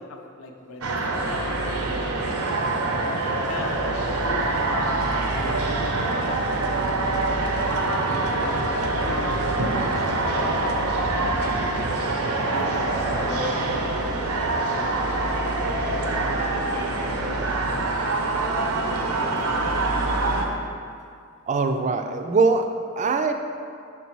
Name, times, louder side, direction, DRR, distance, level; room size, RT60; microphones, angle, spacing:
voice 1, 0.0-2.3 3.4-10.5 11.3-15.2 15.7-17.7 18.5-19.8, left 2 dB, 70° left, 3 dB, 0.6 m, -40 dB
sound 1, 0.8-20.5, right 2 dB, 90° right, 0.7 m, -25 dB
voice 2, 21.5-23.3, right 4 dB, 35° right, 6 dB, 0.3 m, -22 dB
6.4 x 4.0 x 4.6 m, 2.3 s
head